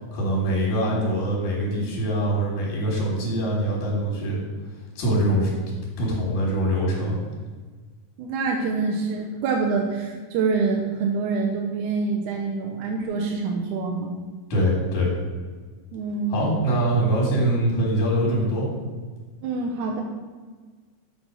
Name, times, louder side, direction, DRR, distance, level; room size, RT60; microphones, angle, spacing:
voice 1, 0.1-4.4 5.0-5.5 6.0-7.2 14.5-15.1 16.3-18.7, right 1 dB, 60° left, -4 dB, 3.1 m, -23 dB
voice 2, 8.2-14.2 15.9-16.6 19.4-20.0, right 4 dB, 75° right, 0 dB, 1.9 m, -26 dB
8.0 x 4.1 x 6.2 m, 1.4 s
omnidirectional pair, 4.0 m